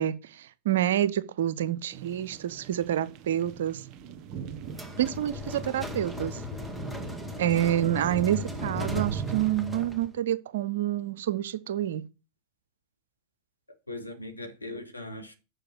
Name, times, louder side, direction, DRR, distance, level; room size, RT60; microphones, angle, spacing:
voice 1, 0.0-3.8 5.0-6.4 7.4-12.0, right 12 dB, 60° right, 0.7 m, -28 dB
sound 1, 1.9-9.5, right 8 dB, 40° right, 1.1 m, -39 dB
sound 2, 4.7-10.1, left 4 dB, ahead, 1.8 m, -38 dB
voice 2, 13.7-15.3, left 2 dB, 85° left, 1.8 m, -40 dB
6.9 x 6.6 x 6.1 m
figure-of-eight pair, 90°, 0 cm